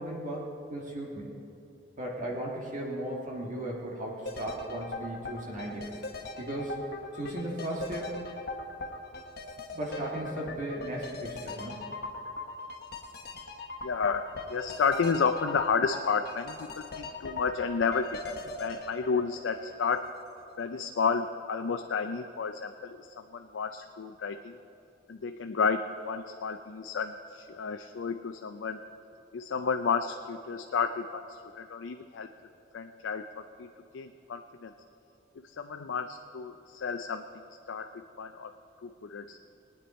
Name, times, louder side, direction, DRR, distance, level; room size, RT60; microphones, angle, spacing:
voice 1, 0.0-1.3 2.0-6.0 6.4-6.8 7.1-8.2 9.7-11.8, right 1 dB, 45° right, -3 dB, 1.7 m, -36 dB
sound 1, 4.3-20.2 20.5-20.6, left 3 dB, 55° left, 1.1 m, -40 dB
voice 2, 13.8-20.1 20.6-24.6 25.1-28.8 29.3-32.3 32.7-34.7 35.4-37.3 37.7-37.9 38.2-38.5 38.8-39.4, left 5 dB, 75° left, 6 dB, 0.5 m, -31 dB
20.0 x 9.5 x 4.2 m, 2.8 s
head